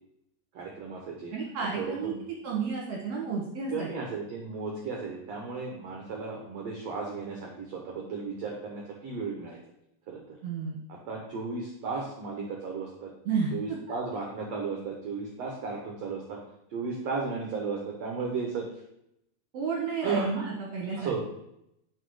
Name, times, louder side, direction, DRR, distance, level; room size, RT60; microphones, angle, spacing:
voice 1, 0.5-1.3 1.7-2.2 3.7-9.6 10.1-10.4 10.9-13.1 13.5-16.4 16.7-18.7 20.0-20.4 21.0-21.2, right 4 dB, 75° right, 0 dB, 1.5 m, -34 dB
voice 2, 1.3-2.1 2.4-3.9 10.4-10.8 13.3-13.8 19.5-21.2, right 5 dB, 60° right, -2 dB, 1.8 m, -31 dB
10.0 x 4.1 x 4.8 m, 0.79 s
omnidirectional pair, 4.5 m